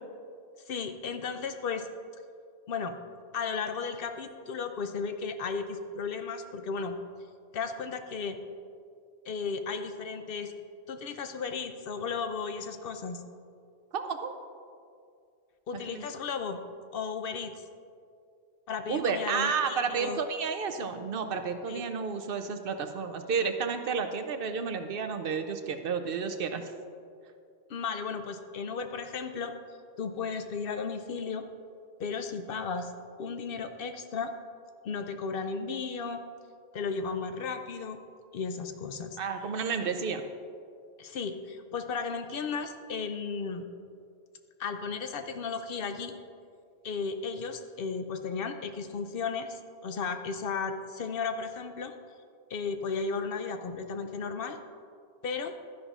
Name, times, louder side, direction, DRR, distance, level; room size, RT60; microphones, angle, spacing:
voice 1, 0.7-1.9 2.7-3.0 3.3-7.0 7.5-8.4 9.3-10.5 10.9-13.2 15.7-16.6 16.9-17.5 18.7-20.2 21.7-21.8 27.7-29.5 30.0-31.5 32.0-32.9 33.2-34.3 34.8-36.2 36.7-38.0 38.3-39.2 41.0-43.7 44.6-46.1 46.8-51.9 52.5-54.6 55.2-55.6, left 5 dB, 65° left, 8 dB, 0.7 m, -34 dB
voice 2, 13.9-14.4 15.7-16.0 18.9-26.7 39.2-40.2, right 5 dB, 65° right, 7 dB, 0.7 m, -31 dB
12.0 x 10.5 x 2.4 m, 2.3 s
omnidirectional pair, 1.1 m